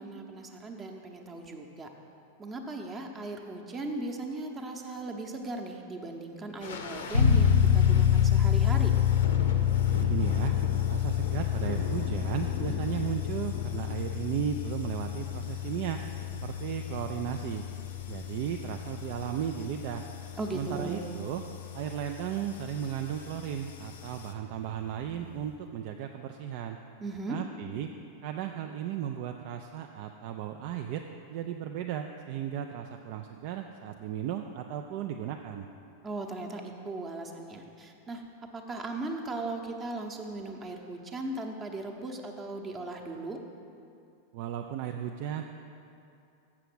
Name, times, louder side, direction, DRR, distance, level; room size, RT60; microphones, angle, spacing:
voice 1, 0.0-1.9 2.4-8.9 20.4-21.1 27.0-27.4 36.0-38.2 38.5-43.4, right 2 dB, 20° right, 3 dB, 0.8 m, -38 dB
sound 1, 6.6-24.3, left 4 dB, 60° left, 0.6 m, -43 dB
sound 2, 7.1-21.6, left 9 dB, 85° right, 0.7 m, -27 dB
voice 2, 9.9-10.6 10.9-16.0 16.4-17.6 18.1-20.0 20.5-21.4 21.7-26.8 27.3-27.9 28.2-31.0 31.3-35.7 44.3-45.5, right 10 dB, 45° right, 4 dB, 0.4 m, -35 dB
7.2 x 6.7 x 6.1 m, 2.6 s
figure-of-eight pair, 90°, 0 cm